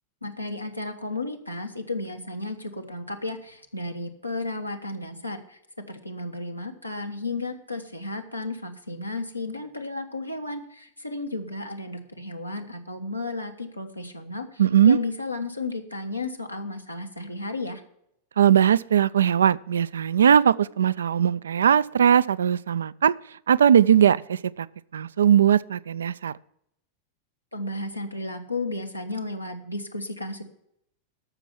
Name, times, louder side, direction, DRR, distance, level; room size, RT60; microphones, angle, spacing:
voice 1, 0.2-5.6 5.9-17.8 27.5-30.4, left 2 dB, 90° left, 1.2 m, -33 dB
voice 2, 14.6-15.0 18.4-23.1 23.5-24.7 24.9-26.3, right 9 dB, 65° right, 0.3 m, -19 dB
13.5 x 6.1 x 5.7 m
figure-of-eight pair, 90°, 0 cm